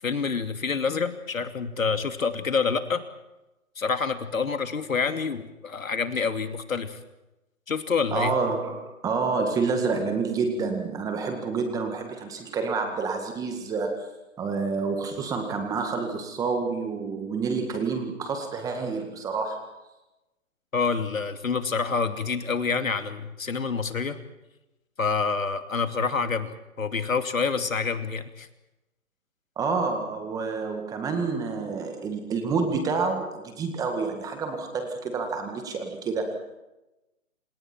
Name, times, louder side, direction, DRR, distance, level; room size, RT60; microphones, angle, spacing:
voice 1, 0.0-3.0 3.8-7.0 7.7-8.3 20.7-24.2 25.0-28.5, left 5 dB, 70° left, 7 dB, 2.8 m, -27 dB
voice 2, 8.1-14.1 14.4-19.6 29.6-36.3, right 4 dB, 10° right, 5 dB, 1.9 m, -28 dB
28.0 x 27.5 x 4.6 m, 0.99 s
figure-of-eight pair, 150°, 42 cm